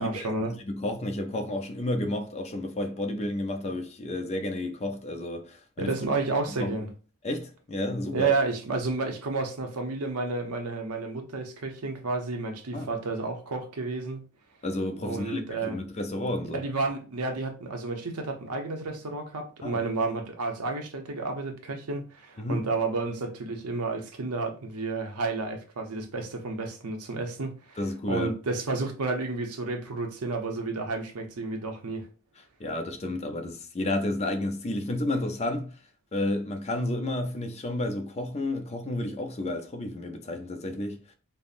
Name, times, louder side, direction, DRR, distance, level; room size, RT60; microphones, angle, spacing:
voice 1, 0.0-0.5 5.8-6.9 8.1-14.2 15.0-15.8 16.4-27.8 28.1-32.1, right 3 dB, 85° right, 0.7 m, -31 dB
voice 2, 0.7-5.9 6.5-6.8 7.2-8.4 12.7-12.9 14.6-16.6 19.6-19.8 22.4-22.7 27.8-28.3 32.6-35.8 36.1-41.0, left 1 dB, 30° left, 0.5 m, -31 dB
5.3 x 2.0 x 2.5 m
head